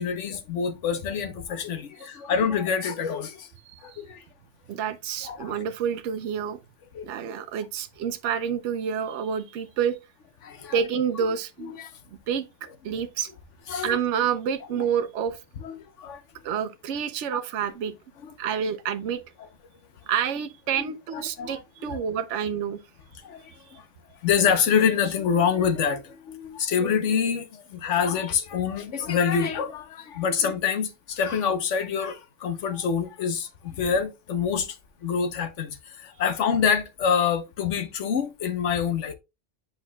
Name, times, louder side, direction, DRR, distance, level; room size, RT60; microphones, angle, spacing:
voice 1, 0.0-3.5 3.8-4.2 5.2-5.6 6.9-7.1 10.4-10.8 11.2-11.3 11.8-11.9 13.7-14.0 15.6-16.2 20.9-22.0 23.2-23.9 24.2-39.1, left 7 dB, 90° left, 1.2 m, -26 dB
voice 2, 3.7-4.0 4.7-6.6 7.0-10.0 10.7-11.7 12.3-13.3 13.8-15.4 16.4-17.9 18.4-19.2 20.1-22.8 23.5-23.6, right 8 dB, 80° right, 0.9 m, -28 dB
8.2 x 5.2 x 2.2 m
omnidirectional pair, 1.2 m